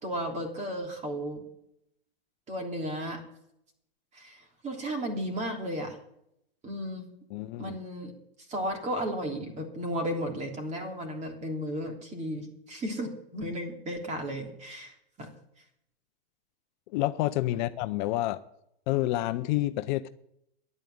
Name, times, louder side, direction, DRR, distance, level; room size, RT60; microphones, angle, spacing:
voice 1, 0.0-1.4 2.5-3.2 4.1-6.0 6.6-7.1 7.6-8.1 8.5-15.3 17.5-17.6, equal, 25° right, 3 dB, 3.2 m, -34 dB
voice 2, 7.3-7.8 16.9-18.4 18.9-20.1, left 16 dB, 50° left, 11 dB, 0.7 m, -28 dB
11.0 x 9.0 x 7.9 m, 0.76 s
hypercardioid pair, 130°, 30 cm